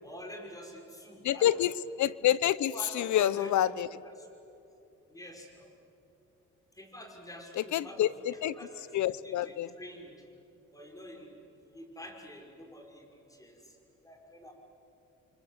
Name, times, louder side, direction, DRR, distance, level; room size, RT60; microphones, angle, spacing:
voice 1, 0.0-1.6 2.6-3.5 4.0-4.3 5.1-5.7 6.7-10.2 10.7-11.4 11.7-13.8 14.0-14.5, equal, 10° left, 2 dB, 5.7 m, -47 dB
voice 2, 1.2-4.0 7.6-8.6 8.9-9.7, left 12 dB, 70° left, 19 dB, 0.8 m, -28 dB
29.0 x 25.0 x 8.1 m, 2.7 s
cardioid pair, 90°, 30 cm